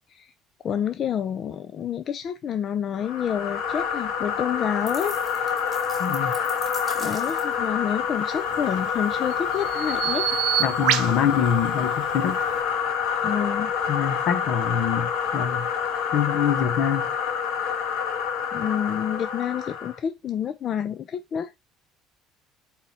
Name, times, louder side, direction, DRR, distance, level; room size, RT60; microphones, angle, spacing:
voice 1, 0.6-5.2 7.0-10.3 13.2-13.7 18.5-21.5, left 8 dB, 30° left, 0.4 m, -28 dB
sound 1, 3.0-20.0, left 7 dB, 75° left, 2.1 m, -27 dB
sound 2, 4.9-7.7, right 3 dB, 10° right, 1.8 m, -41 dB
voice 2, 6.0-6.3 10.6-12.4 13.9-15.7 16.1-17.1, left 8 dB, 50° left, 1.0 m, -25 dB
Bird vocalization bird call bird song, 8.4-12.6, right 13 dB, 60° right, 0.9 m, -29 dB
8.3 x 3.8 x 4.4 m
cardioid pair, 175°, 0 cm